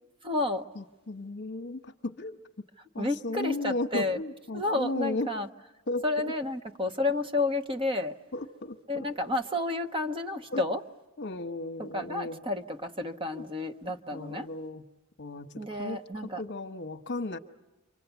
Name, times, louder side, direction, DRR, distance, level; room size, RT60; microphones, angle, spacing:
voice 1, 0.2-0.6 3.0-4.2 4.5-5.5 6.0-8.2 8.9-10.8 11.8-14.5 15.6-16.4, left 2 dB, 25° right, 7 dB, 1.0 m, -31 dB
voice 2, 0.8-2.4 2.9-5.3 5.9-6.3 8.3-9.1 10.5-10.6 11.2-12.4 13.3-13.4 14.1-14.8 15.2-17.4, left 2 dB, 55° left, 7 dB, 1.1 m, -35 dB
28.5 x 25.0 x 8.2 m, 1.1 s
head